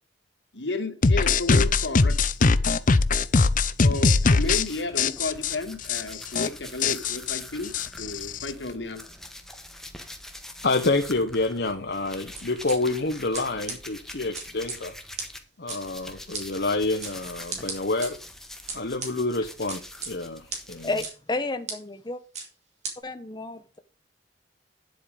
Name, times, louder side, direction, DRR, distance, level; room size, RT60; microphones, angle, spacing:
voice 1, 0.5-2.2 3.8-7.7 8.0-9.0, left 2 dB, 85° left, 2.1 m, -32 dB
sound 1, 1.0-4.7 5.0-5.6 5.9-6.0 6.3-6.5 6.8-8.5, left 4 dB, 50° left, 0.7 m, -21 dB
sound 2, 4.4-15.4 15.7-21.1, left 1 dB, 5° left, 1.5 m, -44 dB
voice 2, 10.6-14.9 15.6-18.2 18.7-20.9, left 2 dB, 65° left, 1.1 m, -28 dB
sound 3, 12.4-12.8 13.3-13.4 13.7-13.8 14.3-14.8 15.2-15.3 15.7-15.8 16.3-16.4 17.0-17.1 17.5-18.1 18.7-19.1 19.7-20.1 20.5-20.6 21.0-21.1 21.7-21.8 22.3-22.5 22.8-22.9, right 4 dB, 40° right, 4.1 m, -33 dB
voice 3, 20.8-22.2 23.0-23.8, left 2 dB, 25° left, 0.9 m, -31 dB
10.5 x 7.8 x 5.2 m
head